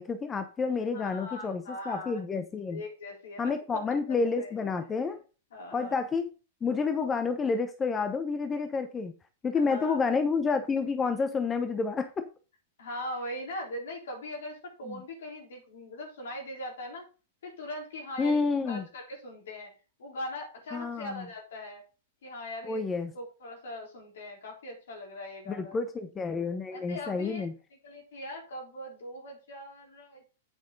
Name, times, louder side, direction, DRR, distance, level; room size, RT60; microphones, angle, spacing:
voice 1, 0.0-2.8 3.4-5.2 5.7-6.3 6.6-9.1 9.4-12.3 14.9-15.0 18.2-18.8 20.7-21.2 22.6-23.1 25.5-27.5, left 4 dB, 20° left, 8 dB, 0.9 m, -29 dB
voice 2, 0.9-2.2 2.7-3.8 4.1-4.6 5.5-6.0 9.5-10.0 12.8-17.1 17.4-18.4 18.7-19.7 20.0-21.8 22.2-25.8 26.7-27.4 27.8-30.3, left 1 dB, 75° left, 0 dB, 4.2 m, -40 dB
8.7 x 6.1 x 3.9 m, 0.33 s
hypercardioid pair, 110°, 0 cm